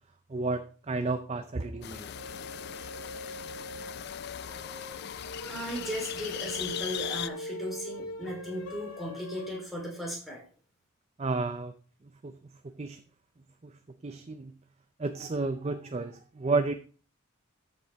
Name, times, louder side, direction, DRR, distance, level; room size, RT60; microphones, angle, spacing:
voice 1, 0.3-2.1 11.2-11.7 12.2-12.4 12.6-13.0 13.6-13.7 14.0-14.5 15.0-16.7, right 3 dB, 30° right, 9 dB, 0.4 m, -31 dB
sound 1, 1.8-7.3, left 10 dB, 50° left, 0.3 m, -39 dB
sound 2, 2.1-9.6, left 1 dB, 80° left, 1.8 m, -42 dB
voice 2, 5.5-10.4, equal, ahead, -3 dB, 3.4 m, -36 dB
13.0 x 5.6 x 3.4 m, 0.39 s
head